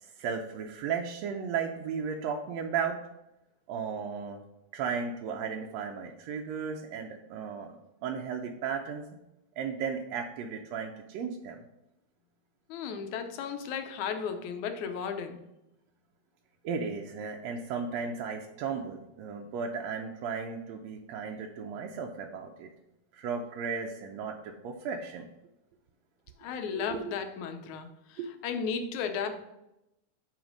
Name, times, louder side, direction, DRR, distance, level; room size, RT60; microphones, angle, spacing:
voice 1, 0.0-3.0 3.7-4.4 4.7-7.8 8.0-9.1 9.6-11.6 16.6-22.7 23.1-25.3 26.7-27.1 28.2-28.3, right 6 dB, 75° right, 1 dB, 1.7 m, -35 dB
voice 2, 12.7-15.4 26.4-29.4, left 6 dB, 80° left, 7 dB, 2.1 m, -35 dB
6.1 x 4.9 x 5.1 m, 0.89 s
omnidirectional pair, 3.4 m